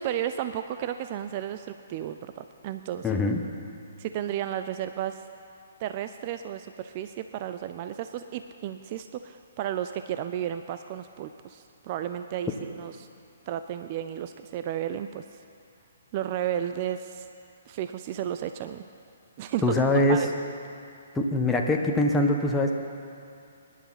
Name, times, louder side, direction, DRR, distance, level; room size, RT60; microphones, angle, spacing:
voice 1, 0.0-3.2 4.0-5.2 5.8-13.1 13.5-15.2 16.1-17.3 17.7-18.8 19.4-19.6 20.1-20.3, right 10 dB, 40° right, 9 dB, 0.5 m, -33 dB
voice 2, 3.0-3.4 19.6-20.3 21.1-22.7, left 1 dB, 10° left, 0 dB, 1.3 m, -23 dB
25.0 x 11.0 x 4.2 m, 2.5 s
figure-of-eight pair, 130°, 0 cm